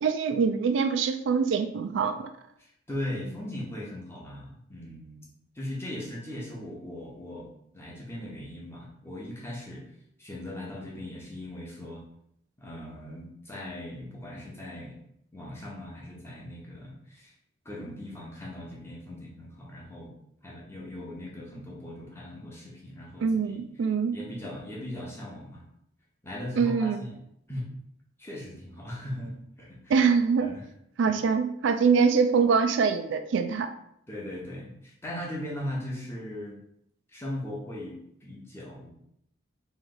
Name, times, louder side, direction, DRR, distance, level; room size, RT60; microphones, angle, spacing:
voice 1, 0.0-2.3 23.2-24.2 26.6-27.0 29.9-30.5 31.0-33.7, right 5 dB, 70° right, 8 dB, 0.3 m, -24 dB
voice 2, 2.6-5.2 5.5-7.5 7.7-9.8 10.2-12.0 12.6-15.0 15.3-17.3 17.6-20.1 20.4-23.6 24.1-25.6 26.2-27.2 27.5-27.7 28.2-29.9 30.4-30.7 31.0-31.2 34.1-36.6 37.1-38.9, left 1 dB, 15° left, -3 dB, 0.8 m, -39 dB
3.1 x 3.0 x 3.8 m, 0.74 s
head